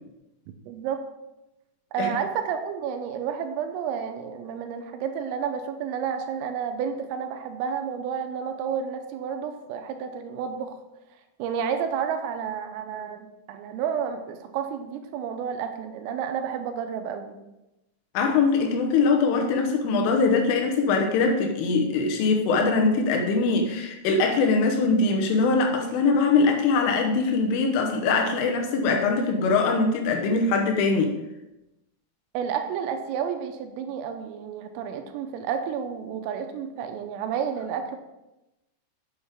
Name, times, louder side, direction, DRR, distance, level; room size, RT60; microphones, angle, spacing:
voice 1, 0.7-1.0 1.9-10.8 11.4-17.4 32.3-38.0, right 7 dB, 80° right, 6 dB, 3.3 m, -31 dB
voice 2, 18.1-31.2, left 4 dB, 80° left, 2 dB, 3.4 m, -22 dB
8.7 x 8.1 x 3.6 m, 0.96 s
omnidirectional pair, 6.0 m